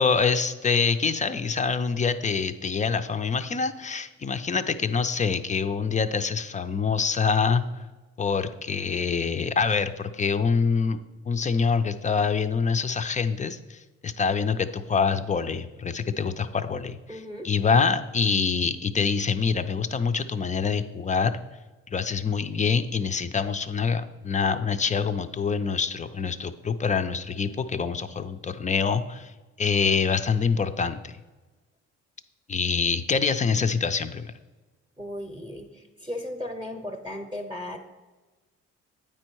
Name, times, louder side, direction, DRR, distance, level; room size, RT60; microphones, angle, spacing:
voice 1, 0.0-7.6 8.2-11.0 11.3-17.0 17.4-21.3 21.9-29.3 29.6-31.1 32.5-34.3, left 5 dB, 25° left, 10 dB, 0.4 m, -25 dB
voice 2, 17.1-17.5 35.0-37.8, left 1 dB, 15° right, 5 dB, 0.8 m, -36 dB
8.9 x 4.4 x 4.6 m, 1.2 s
cardioid pair, 90°, 30 cm